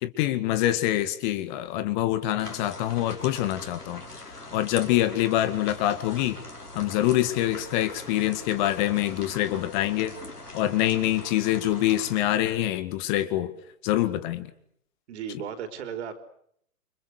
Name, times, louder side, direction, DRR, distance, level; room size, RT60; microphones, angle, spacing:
voice 1, 0.0-4.0 4.5-6.4 6.7-10.1 10.5-13.5 13.8-14.5, left 14 dB, 30° left, 12 dB, 2.1 m, -25 dB
sound 1, 2.4-12.2, left 2 dB, 85° left, 6.5 m, -42 dB
voice 2, 15.1-16.2, right 8 dB, 45° right, 9 dB, 4.8 m, -35 dB
29.5 x 26.0 x 6.7 m, 0.69 s
figure-of-eight pair, 120°, 45 cm